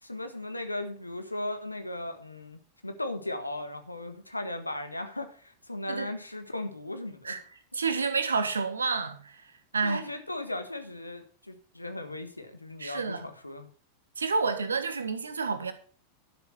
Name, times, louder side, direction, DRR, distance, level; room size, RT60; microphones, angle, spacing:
voice 1, 0.0-7.4 9.8-13.7, left 1 dB, 85° left, 1.5 m, -37 dB
voice 2, 7.7-9.4 9.7-10.0 12.8-13.3 14.2-15.7, right 4 dB, 75° right, 1.4 m, -29 dB
12.0 x 7.1 x 6.0 m
figure-of-eight pair, 90°, 0 cm